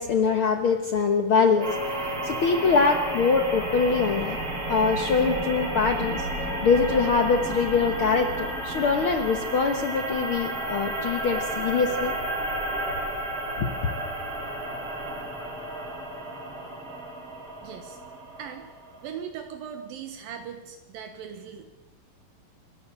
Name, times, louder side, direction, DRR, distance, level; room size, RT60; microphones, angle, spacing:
voice 1, 0.0-4.4 4.7-12.1 13.6-13.7, left 5 dB, 65° left, 6 dB, 1.3 m, -24 dB
sound 1, 1.5-7.4, left 2 dB, 50° left, 3.8 m, -39 dB
sound 2, 1.6-19.1, right 1 dB, 40° right, 4.8 m, -32 dB
voice 2, 17.6-18.0 18.4-18.6 19.0-21.7, right 8 dB, 80° right, 6 dB, 3.0 m, -39 dB
28.0 x 12.5 x 8.5 m, 1.1 s
omnidirectional pair, 4.1 m